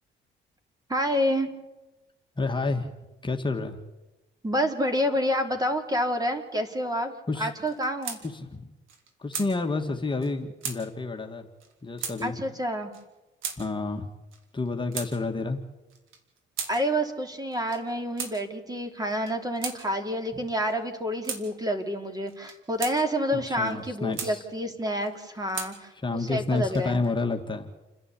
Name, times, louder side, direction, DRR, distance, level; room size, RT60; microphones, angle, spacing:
voice 1, 0.9-1.5 4.4-8.2 12.2-12.9 16.7-27.0, equal, 20° right, 6 dB, 3.1 m, -28 dB
voice 2, 2.4-2.9 3.2-3.8 7.3-7.5 8.3-8.7 9.2-11.5 11.8-12.3 13.6-14.1 14.5-15.6 23.3-24.4 26.0-27.7, left 3 dB, 25° left, 3 dB, 1.9 m, -29 dB
sound 1, 7.7-8.2 8.5-8.6 8.9-9.5 10.2-10.3 10.6-10.8 11.6-11.7 12.0-12.2 12.9-13.0 13.4-13.6 14.3-15.1 15.9-16.7 17.5-17.8 18.2-18.3 19.1-19.8 20.6-20.8 21.2-21.4 22.3-23.0 23.6-24.3 25.0-25.7 26.5-27.1, right 6 dB, 85° right, 3.3 m, -36 dB
29.0 x 11.0 x 8.5 m, 1.0 s
cardioid pair, 90°, 20 cm